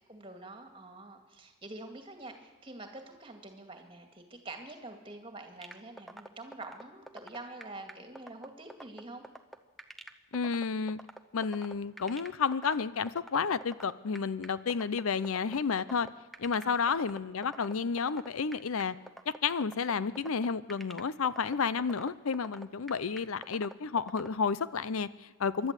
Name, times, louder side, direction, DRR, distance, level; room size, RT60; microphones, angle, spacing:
voice 1, 0.1-9.3 16.6-16.8 25.6-25.7, right 2 dB, 25° right, 5 dB, 2.2 m, -46 dB
sound 1, 5.6-24.3, right 1 dB, ahead, 0.7 m, -46 dB
voice 2, 10.3-11.0 11.3-16.1 16.4-19.0 19.3-25.7, left 5 dB, 80° left, 17 dB, 0.6 m, -31 dB
26.5 x 12.0 x 8.2 m, 1.3 s
head